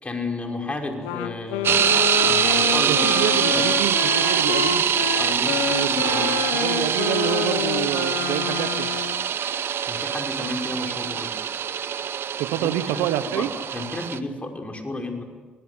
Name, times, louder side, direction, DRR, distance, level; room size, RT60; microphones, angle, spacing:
voice 1, 0.0-1.8 2.2-3.7 5.2-5.6 5.9-6.4 9.9-11.4 12.6-15.2, left 2 dB, 30° left, 3 dB, 5.6 m, -32 dB
sound 1, 0.8-5.9, left 6 dB, 50° left, 6.3 m, -52 dB
Wind instrument woodwind instrument, 1.0-9.3, left 12 dB, 85° left, 1.0 m, -28 dB
sound 2, 1.6-14.2, right 8 dB, 60° right, 1.1 m, -24 dB
voice 2, 2.9-4.9 5.7-6.1 6.5-8.9 12.4-13.5, right 12 dB, 80° right, 13 dB, 1.1 m, -27 dB
25.5 x 20.0 x 9.7 m, 1.4 s
hypercardioid pair, 50°, 5 cm